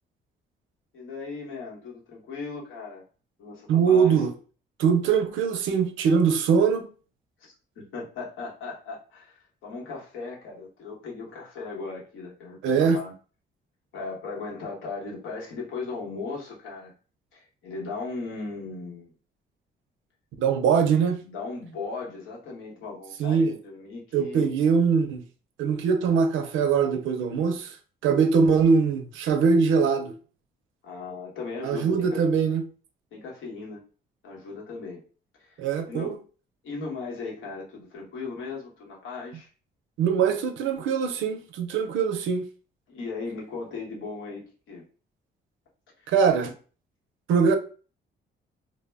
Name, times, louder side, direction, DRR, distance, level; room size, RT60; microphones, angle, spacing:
voice 1, 0.9-3.0 3.4-4.2 7.4-13.1 13.9-16.9 17.3-19.1 21.2-24.5 30.8-32.2 33.1-33.8 34.2-35.0 35.4-36.1 36.6-39.5 42.9-44.8 46.0-46.1, left 4 dB, 80° left, 1.0 m, -37 dB
voice 2, 3.7-4.3 4.8-6.9 12.6-13.0 20.4-21.2 23.2-23.6 24.1-25.2 25.6-27.8 28.0-30.2 31.6-32.6 35.6-36.2 40.0-42.4 46.1-46.5 47.3-47.6, right 6 dB, 85° right, 0.5 m, -22 dB
2.1 x 2.0 x 3.3 m
cardioid pair, 90°, 20 cm